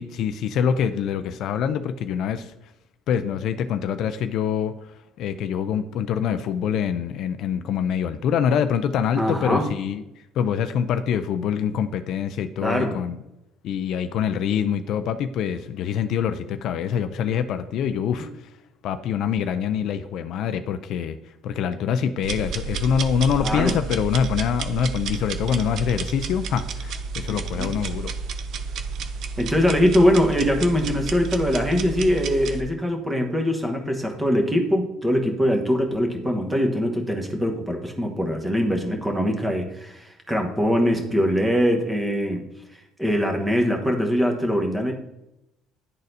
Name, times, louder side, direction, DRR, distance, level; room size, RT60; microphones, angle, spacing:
voice 1, 0.0-2.5 3.1-13.2 13.6-18.5 18.8-28.1, left 8 dB, 60° left, 10 dB, 0.4 m, -25 dB
voice 2, 9.2-9.6 12.6-13.0 23.4-23.7 27.3-27.7 29.4-42.4 43.0-44.9, equal, 10° right, 2 dB, 1.1 m, -22 dB
sound 1, 22.2-32.6, right 4 dB, 55° right, 0.5 m, -31 dB
11.0 x 4.1 x 2.6 m, 0.90 s
cardioid pair, 120°, 0 cm